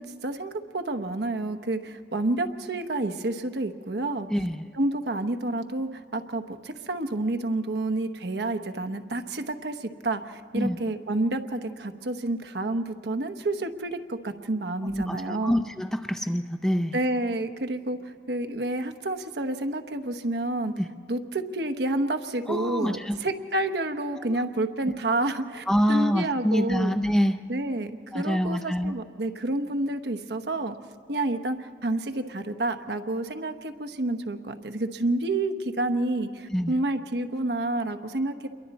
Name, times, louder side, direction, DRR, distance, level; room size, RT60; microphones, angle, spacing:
voice 1, 0.0-4.3 4.7-15.6 16.9-20.7 21.1-27.0 27.5-30.8 31.1-38.5, right 2 dB, 70° right, 8 dB, 1.0 m, -29 dB
voice 2, 4.3-4.7 10.5-10.8 14.8-17.0 20.8-20.9 22.5-23.2 24.2-24.4 24.9-25.0 25.7-27.4 28.1-29.0 36.5-36.7, equal, 5° left, 6 dB, 0.5 m, -26 dB
28.0 x 22.5 x 4.1 m, 2.4 s
head